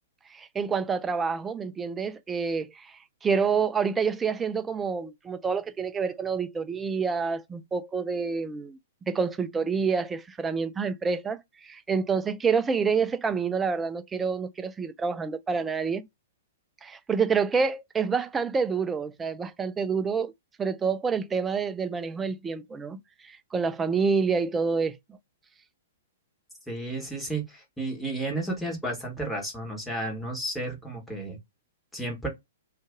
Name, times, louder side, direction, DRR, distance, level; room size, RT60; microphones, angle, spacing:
voice 1, 0.3-8.8 9.1-16.1 16.8-20.3 20.6-25.0, right 5 dB, 15° right, 0.3 m, -28 dB
voice 2, 26.7-31.4 31.9-32.3, right 2 dB, 5° left, 1.2 m, -32 dB
2.6 x 2.5 x 3.5 m
figure-of-eight pair, 110°, 0 cm